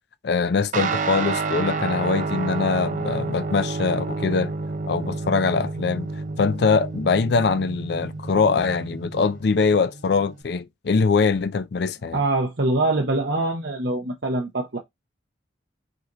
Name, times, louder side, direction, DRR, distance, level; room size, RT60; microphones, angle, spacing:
voice 1, 0.2-4.5 4.9-6.1 6.4-12.2, left 4 dB, 55° left, 0.4 m, -22 dB
Guitar, 0.7-10.4, right 3 dB, 40° right, 0.5 m, -30 dB
voice 2, 12.1-14.8, right 2 dB, 60° right, 0.9 m, -24 dB
5.0 x 2.8 x 3.7 m
head